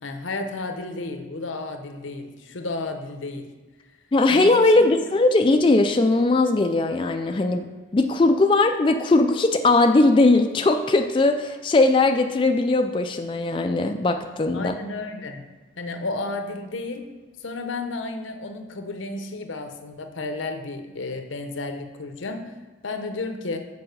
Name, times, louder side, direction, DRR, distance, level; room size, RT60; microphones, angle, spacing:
voice 1, 0.0-3.5 4.3-4.5 4.8-5.0 14.5-15.4 15.8-17.1 17.4-22.5 22.8-23.6, left 3 dB, 90° left, 7 dB, 0.8 m, -32 dB
voice 2, 4.1-14.7, left 2 dB, 25° left, 5 dB, 0.3 m, -19 dB
6.9 x 4.9 x 6.6 m, 1.3 s
head